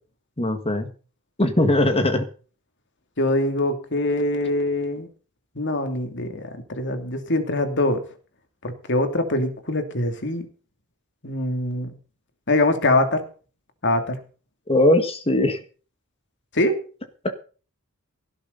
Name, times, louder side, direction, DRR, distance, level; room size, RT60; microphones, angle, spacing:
voice 1, 0.4-0.9 1.4-2.3 14.7-15.6 17.2-17.4, left 1 dB, 25° left, 8 dB, 1.8 m, -20 dB
voice 2, 3.2-5.1 5.6-8.0 8.6-10.5 11.2-11.9 12.5-13.2 13.8-14.2 16.5-16.7, left 1 dB, 55° left, 7 dB, 2.9 m, -23 dB
17.5 x 12.5 x 4.1 m, 0.38 s
head